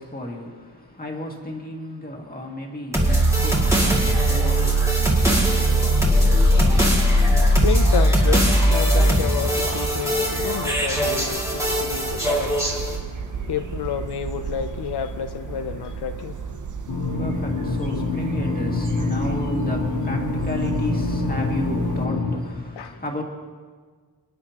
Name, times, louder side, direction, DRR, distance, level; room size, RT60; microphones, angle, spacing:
voice 1, 0.0-5.1 16.9-23.2, left 1 dB, 20° left, 0 dB, 2.1 m, -33 dB
sound 1, 2.9-13.0, equal, 5° right, 2.2 m, -19 dB
sound 2, 5.1-22.1, right 6 dB, 50° right, 0.7 m, -33 dB
voice 2, 6.5-16.6 22.8-23.0, left 8 dB, 80° left, 8 dB, 0.6 m, -31 dB
sound 3, 16.9-22.4, left 3 dB, 60° left, 1.9 m, -26 dB
27.0 x 10.0 x 2.9 m, 1.5 s
wide cardioid pair, 135°, 39 cm